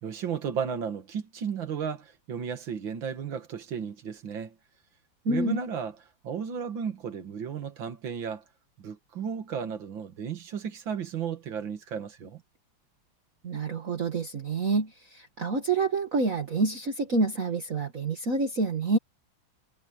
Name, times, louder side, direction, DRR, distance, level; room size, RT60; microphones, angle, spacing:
voice 1, 0.0-4.5 5.3-6.0 6.2-8.4 8.8-12.4, right 7 dB, 70° right, 2.6 m, -34 dB
voice 2, 5.3-5.6 13.4-19.0, right 3 dB, 45° right, 2.1 m, -27 dB
omnidirectional pair, 2.2 m